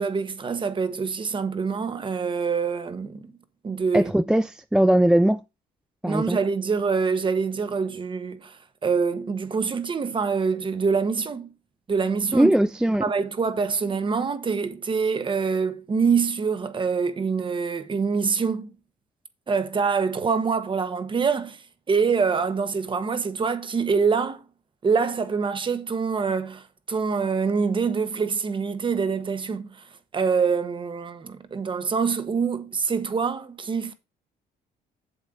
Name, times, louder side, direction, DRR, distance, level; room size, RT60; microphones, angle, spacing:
voice 1, 0.0-3.3 3.6-4.1 6.0-11.5 11.9-12.5 12.9-18.7 19.5-21.6 21.9-24.4 24.8-29.8 30.1-33.9, right 5 dB, 30° right, 1.3 m, -25 dB
voice 2, 3.9-5.4 6.0-6.4 12.3-13.0, right 1 dB, 5° right, 0.3 m, -20 dB
8.0 x 7.5 x 3.8 m
cardioid pair, 110°, 17 cm